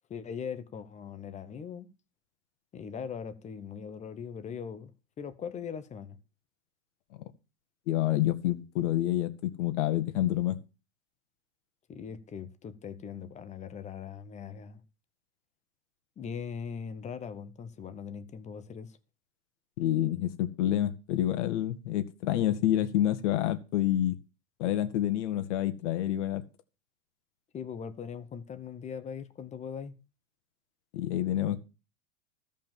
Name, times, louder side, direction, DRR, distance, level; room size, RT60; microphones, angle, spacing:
voice 1, 0.1-1.9 2.7-4.9 5.2-6.2 11.9-14.8 16.2-19.0 27.5-29.9, left 7 dB, 15° left, 1.0 m, -40 dB
voice 2, 7.9-10.6 19.8-24.2 24.6-26.4 30.9-31.6, left 13 dB, 55° left, 1.8 m, -28 dB
13.5 x 5.3 x 7.4 m
hypercardioid pair, 135°, 42 cm